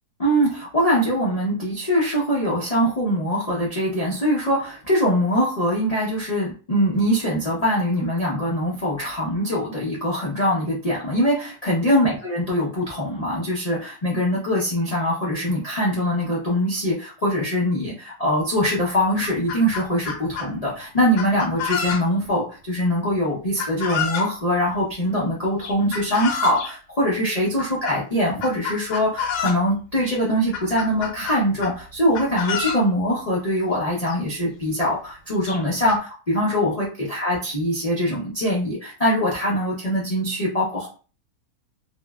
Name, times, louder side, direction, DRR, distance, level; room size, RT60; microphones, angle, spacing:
voice 1, 0.2-40.9, equal, 60° left, -6 dB, 0.4 m, -23 dB
Chicken rooster, 18.6-18.7 19.0-20.5 21.2-22.3 23.6-24.3 25.6-26.7 27.6-28.0 28.4-29.6 30.0-30.2 30.5-31.8 32.1-32.8 33.8-33.9 34.1-34.2 34.8-34.9 35.4-36.0, left 6 dB, 85° left, 1.2 m, -29 dB
2.9 x 2.1 x 2.2 m, 0.36 s
omnidirectional pair, 1.7 m